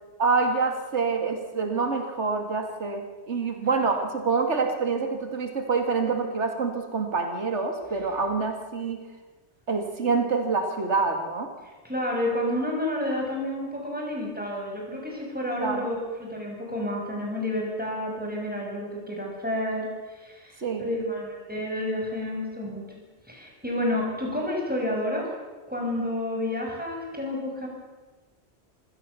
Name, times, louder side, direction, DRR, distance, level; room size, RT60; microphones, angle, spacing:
voice 1, 0.2-9.0 9.7-11.5 15.6-15.9 20.6-20.9, right 4 dB, 85° right, 5 dB, 2.4 m, -26 dB
voice 2, 11.8-22.9 23.3-25.3 25.7-27.7, left 1 dB, 10° right, -1 dB, 6.4 m, -30 dB
27.0 x 16.0 x 6.9 m, 1.3 s
omnidirectional pair, 1.1 m